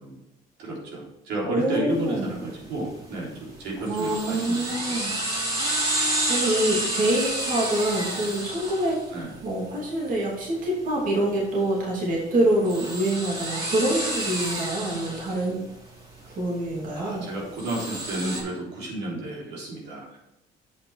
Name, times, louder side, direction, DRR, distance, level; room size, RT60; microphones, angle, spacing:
voice 1, 0.6-5.2 9.1-9.3 17.0-20.2, right 1 dB, 85° right, -4 dB, 3.5 m, -32 dB
voice 2, 1.5-2.3 3.8-5.1 6.3-9.0 9.4-15.6 16.3-17.3, right 1 dB, 50° right, -3 dB, 2.8 m, -25 dB
sound 1, 1.9-18.4, right 1 dB, 35° right, 3.3 m, -32 dB
8.5 x 5.7 x 4.7 m, 0.93 s
cardioid pair, 110°, 17 cm